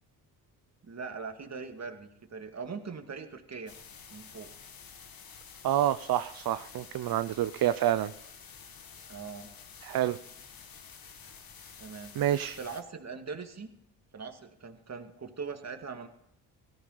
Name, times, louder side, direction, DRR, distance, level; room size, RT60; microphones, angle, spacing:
voice 1, 0.8-3.7 4.1-4.5 9.1-9.5 11.8-12.2 12.6-13.7 14.1-16.1, right 5 dB, 40° right, 5 dB, 2.3 m, -41 dB
sound 1, 3.7-12.8, left 6 dB, 55° left, 1.9 m, -50 dB
voice 2, 5.6-8.1 9.8-10.2 12.2-12.6, right 12 dB, 55° right, 12 dB, 0.7 m, -28 dB
17.5 x 14.0 x 4.0 m, 0.79 s
supercardioid pair, 60°, 42 cm